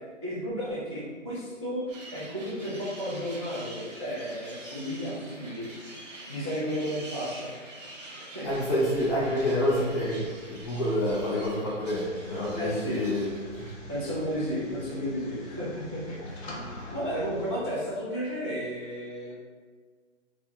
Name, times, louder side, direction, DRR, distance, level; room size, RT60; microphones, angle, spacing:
voice 1, 0.0-7.5 8.1-8.5 12.6-13.0 13.9-16.6 16.9-19.3, equal, 25° right, -9 dB, 0.3 m, -33 dB
sound 1, 1.9-13.7, right 1 dB, 85° right, 1.2 m, -46 dB
voice 2, 8.4-13.7, left 1 dB, 20° left, -7 dB, 0.7 m, -28 dB
sound 2, 11.9-17.5, left 1 dB, 60° left, 0.9 m, -43 dB
4.2 x 2.3 x 2.8 m, 1.5 s
hypercardioid pair, 150°, 37 cm